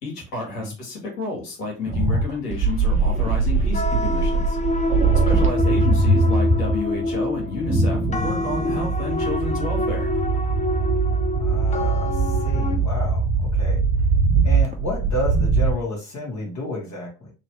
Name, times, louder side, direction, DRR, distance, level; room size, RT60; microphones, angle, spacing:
voice 1, 0.0-4.6 5.2-10.1, left 3 dB, 85° left, -1 dB, 1.9 m, -31 dB
sound 1, 1.9-15.7, right 3 dB, 15° right, 1.0 m, -21 dB
sound 2, 3.7-12.8, left 2 dB, 15° left, 0.6 m, -27 dB
voice 2, 11.4-14.1 14.4-17.3, left 1 dB, 40° left, -2 dB, 1.7 m, -31 dB
3.2 x 3.1 x 3.0 m, 0.31 s
hypercardioid pair, 65°, 46 cm